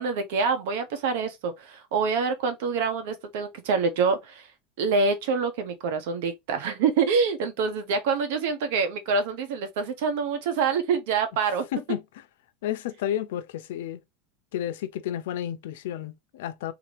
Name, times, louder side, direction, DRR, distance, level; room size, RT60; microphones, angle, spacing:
voice 1, 0.0-4.5 4.8-11.6, right 5 dB, 75° right, 1.1 m, -26 dB
voice 2, 11.7-12.3 12.6-14.0 14.5-16.7, left 11 dB, 90° left, 0.6 m, -31 dB
3.7 x 2.9 x 3.3 m
supercardioid pair, 145°, 0 cm